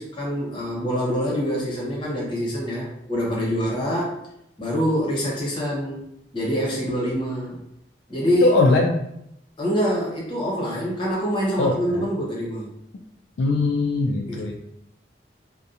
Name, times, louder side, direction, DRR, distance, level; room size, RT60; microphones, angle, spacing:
voice 1, 0.0-4.2 4.6-6.0 6.3-7.6 8.1-8.5 9.6-12.7 14.3-14.5, equal, 30° left, -4 dB, 0.8 m, -25 dB
voice 2, 8.4-9.0 11.6-12.0 13.4-14.5, left 2 dB, 80° left, 2 dB, 0.3 m, -20 dB
2.7 x 2.1 x 2.4 m, 0.78 s
head